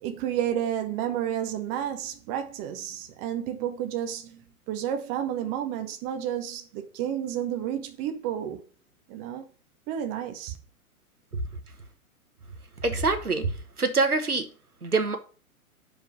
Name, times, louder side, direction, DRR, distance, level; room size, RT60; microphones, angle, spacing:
voice 1, 0.0-8.6 9.1-9.5 9.9-10.6, right 10 dB, 20° right, 0.6 m, -31 dB
voice 2, 12.8-14.5 14.8-15.2, right 3 dB, 85° right, 1.3 m, -25 dB
5.2 x 5.0 x 6.2 m
figure-of-eight pair, 110°, 44 cm